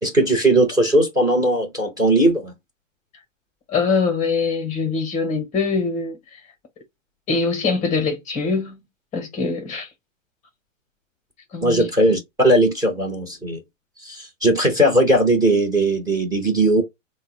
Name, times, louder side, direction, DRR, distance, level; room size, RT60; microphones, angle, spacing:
voice 1, 0.0-2.5 11.6-13.6 14.0-16.8, right 1 dB, 10° right, 0.8 m, -18 dB
voice 2, 3.7-6.4 7.3-8.8 9.1-9.9 11.5-11.9, left 4 dB, 20° left, 0.8 m, -23 dB
4.0 x 2.1 x 3.8 m
hypercardioid pair, 125°, 39 cm